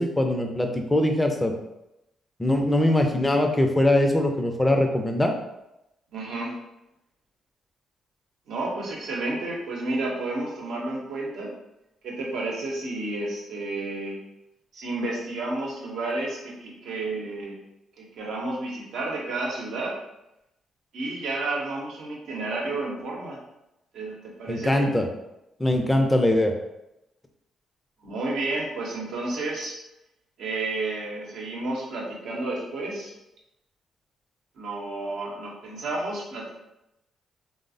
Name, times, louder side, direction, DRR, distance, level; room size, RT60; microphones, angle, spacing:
voice 1, 0.0-1.5 2.4-5.3 24.5-25.1 25.6-26.5, left 1 dB, 15° left, 3 dB, 0.5 m, -22 dB
voice 2, 6.1-6.5 8.5-11.5 12.0-14.2 14.7-17.6 18.0-20.0 20.9-23.4 23.9-24.9 28.0-29.8 30.4-33.1 34.6-36.5, right 2 dB, 75° right, -3 dB, 0.8 m, -31 dB
3.1 x 2.0 x 2.6 m, 0.89 s
supercardioid pair, 50°, 0 cm